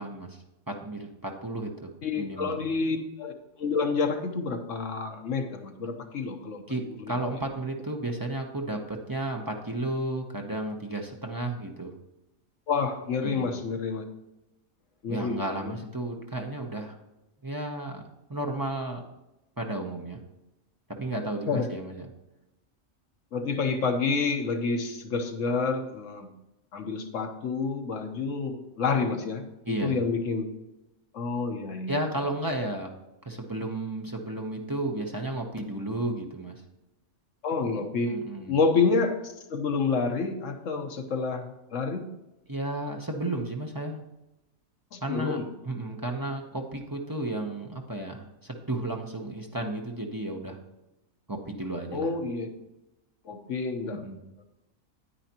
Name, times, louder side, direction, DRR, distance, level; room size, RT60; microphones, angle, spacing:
voice 1, 0.0-1.9 2.2-2.6 6.7-11.9 13.2-13.5 15.1-16.9 17.4-18.0 18.3-19.0 19.6-20.2 21.0-22.1 29.6-30.0 31.9-32.9 33.2-36.6 38.1-38.6 42.5-44.0 45.0-45.4 45.6-50.6 51.3-52.1 53.9-54.2, right 1 dB, 20° right, 1 dB, 0.7 m, -33 dB
voice 2, 2.0-6.6 7.0-7.2 12.7-14.0 15.0-15.7 21.5-21.7 23.3-26.3 26.7-29.4 29.8-30.5 31.1-32.0 37.4-38.2 38.5-42.1 44.9-45.5 51.9-52.5 53.2-54.0, left 4 dB, 65° left, 5 dB, 1.3 m, -28 dB
9.6 x 9.1 x 2.9 m, 0.96 s
omnidirectional pair, 1.4 m